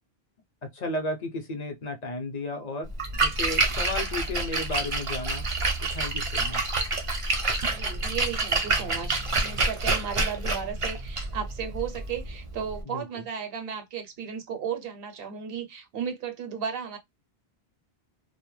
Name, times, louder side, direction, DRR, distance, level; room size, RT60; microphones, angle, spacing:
voice 1, 0.6-2.9 3.2-5.4 5.9-6.6 12.8-13.0, left 2 dB, 50° left, 0.6 m, -33 dB
Splash splatter, 2.9-12.8, right 3 dB, 40° right, 0.5 m, -28 dB
voice 2, 7.7-17.0, right 7 dB, 70° right, 0.8 m, -35 dB
2.1 x 2.1 x 3.0 m
omnidirectional pair, 1.1 m